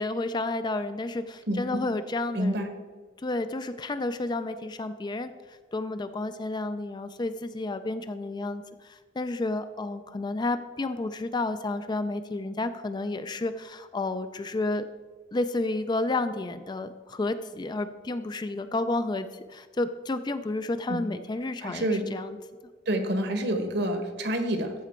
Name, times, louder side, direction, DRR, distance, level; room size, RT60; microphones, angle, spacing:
voice 1, 0.0-2.7 3.2-14.8 15.3-22.4, left 2 dB, 20° left, 11 dB, 0.3 m, -31 dB
voice 2, 2.3-2.7 20.9-21.0 21.6-22.1 22.9-24.7, right 1 dB, 60° right, 6 dB, 1.2 m, -28 dB
14.0 x 5.0 x 4.4 m, 1.5 s
head